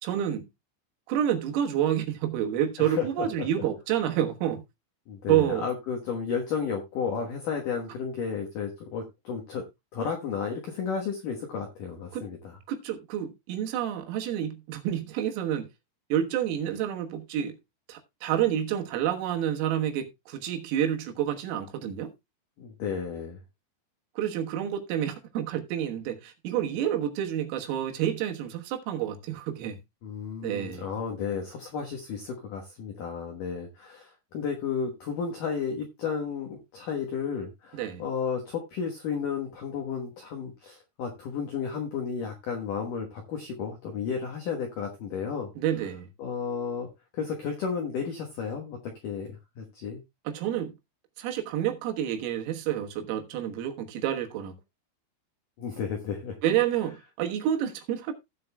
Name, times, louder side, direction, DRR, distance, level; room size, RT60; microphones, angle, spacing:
voice 1, 0.0-0.5 1.1-4.6 5.3-5.7 12.1-12.2 12.7-15.7 16.1-17.6 17.9-22.1 24.2-29.8 30.4-30.9 37.7-38.0 45.6-46.1 50.3-50.7 51.2-54.6 56.4-58.1, right 10 dB, 85° right, 4.0 m, -29 dB
voice 2, 2.8-3.5 5.1-9.6 9.9-12.6 22.6-23.4 30.0-45.5 46.2-48.8 49.0-50.0 55.6-56.4, left 6 dB, 80° left, 1.9 m, -33 dB
17.0 x 7.7 x 2.3 m
omnidirectional pair, 5.9 m